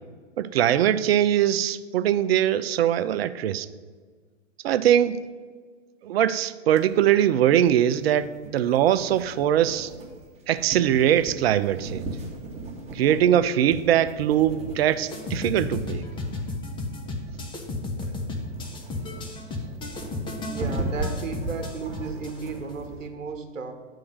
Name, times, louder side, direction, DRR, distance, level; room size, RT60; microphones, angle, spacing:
voice 1, 0.4-3.7 4.6-5.2 6.0-9.9 10.5-12.1 12.9-16.0, right 10 dB, 55° right, 14 dB, 0.5 m, -22 dB
sound 1, 6.8-23.1, right 2 dB, 15° right, 1.3 m, -38 dB
sound 2, 15.1-22.7, left 2 dB, 15° left, 0.8 m, -33 dB
voice 2, 20.5-23.7, right 5 dB, 85° right, 6 dB, 1.1 m, -34 dB
9.6 x 3.8 x 6.4 m, 1.5 s
hypercardioid pair, 115°, 38 cm